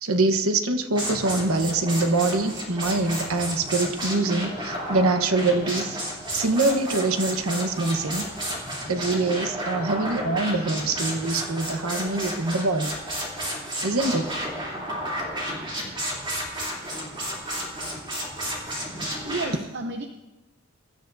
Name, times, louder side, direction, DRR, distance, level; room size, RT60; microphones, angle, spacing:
voice 1, 0.0-6.0 6.3-8.3 8.8-13.0 13.8-14.4, right 2 dB, 80° right, 8 dB, 1.1 m, -24 dB
sound 1, 0.9-19.5, equal, 25° right, 3.0 m, -32 dB
voice 2, 19.2-20.1, right 2 dB, 50° right, 5 dB, 0.7 m, -31 dB
23.0 x 12.5 x 2.7 m, 1.1 s
head